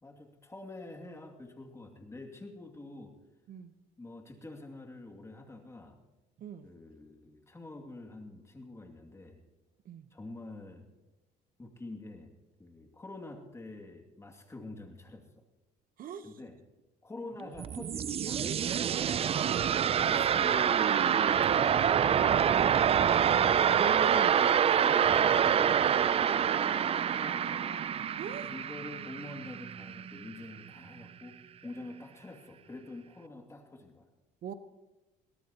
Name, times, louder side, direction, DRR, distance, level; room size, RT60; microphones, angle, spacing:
voice 1, 0.0-3.1 4.0-6.0 6.6-9.4 10.1-10.9 11.6-12.3 12.6-15.4 16.2-16.6 17.0-18.7 20.1-23.5 24.3-27.9 28.5-31.3 31.6-34.1, left 2 dB, 15° left, 3 dB, 2.4 m, -47 dB
voice 2, 6.4-6.7 9.8-10.1 16.0-16.3 19.5-19.7 23.8-24.4 28.2-28.5 34.4-34.5, right 6 dB, 55° right, 10 dB, 1.0 m, -39 dB
sound 1, 17.4-30.2, right 8 dB, 35° right, 0.4 m, -26 dB
22.0 x 17.5 x 2.9 m, 1.1 s
cardioid pair, 110°, 17 cm